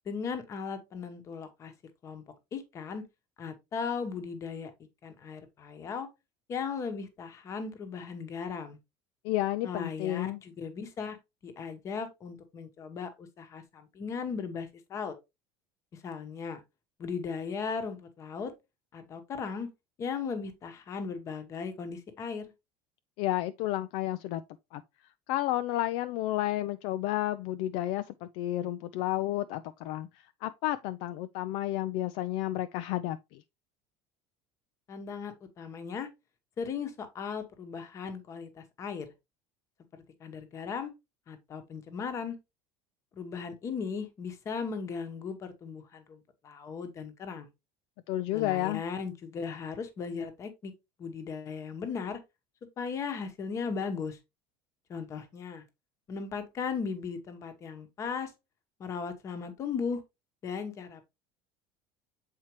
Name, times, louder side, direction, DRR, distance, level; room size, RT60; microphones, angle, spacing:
voice 1, 0.1-1.7 2.0-2.2 2.5-3.0 3.4-4.7 5.0-6.1 6.5-8.8 9.6-11.2 11.4-15.1 15.9-16.6 17.0-18.5 18.9-19.7 20.0-22.5 34.9-36.1 36.6-39.1 39.9-40.9 41.3-42.4 43.1-46.2 46.4-47.5 48.3-50.7 51.0-52.2 52.8-54.2 54.9-55.6 56.1-58.3 58.8-60.0 60.4-61.0, left 5 dB, 25° left, 1.1 m, -37 dB
voice 2, 9.2-10.4 23.2-24.4 24.7-24.8 25.3-33.4 48.1-48.8, left 15 dB, 55° left, 0.4 m, -31 dB
7.3 x 4.3 x 3.0 m
cardioid pair, 170°, 11 cm